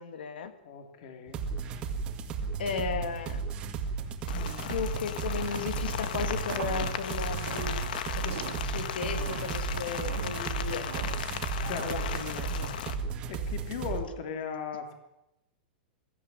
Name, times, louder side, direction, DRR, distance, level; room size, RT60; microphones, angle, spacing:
voice 1, 0.0-0.5 2.6-3.4 4.7-10.9 11.8-12.5, left 6 dB, 85° left, 9 dB, 2.6 m, -35 dB
voice 2, 0.6-1.4 4.3-4.6 11.6-12.2 13.3-14.9, left 6 dB, 45° left, 6 dB, 3.0 m, -38 dB
sound 1, 1.3-14.0, right 5 dB, 20° right, 2.0 m, -34 dB
Rain, 4.3-12.9, left 9 dB, 60° left, 1.7 m, -37 dB
sound 2, 6.4-12.7, right 8 dB, 80° right, 1.9 m, -42 dB
22.0 x 14.0 x 9.3 m, 0.89 s
supercardioid pair, 175°, 5 cm